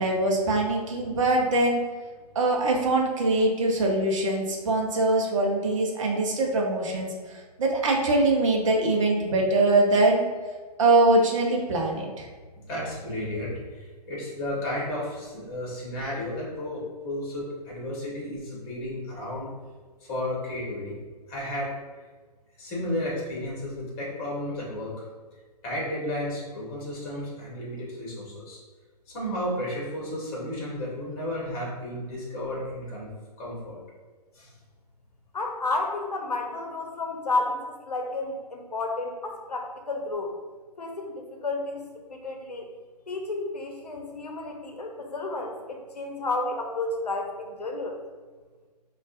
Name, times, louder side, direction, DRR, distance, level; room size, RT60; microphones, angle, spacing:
voice 1, 0.0-1.8 2.3-10.2 10.8-12.3, right 2 dB, 50° right, 0 dB, 0.7 m, -23 dB
voice 2, 12.7-19.5 20.0-20.9 21.3-21.7 22.6-24.9 25.6-28.6 29.1-33.1 33.4-33.7 34.3-34.5, left 1 dB, 25° left, -5 dB, 1.4 m, -33 dB
voice 3, 35.3-40.3 40.8-42.7 43.1-48.0, left 2 dB, 70° left, 2 dB, 0.7 m, -31 dB
5.2 x 2.4 x 2.5 m, 1.4 s
figure-of-eight pair, 130°, 21 cm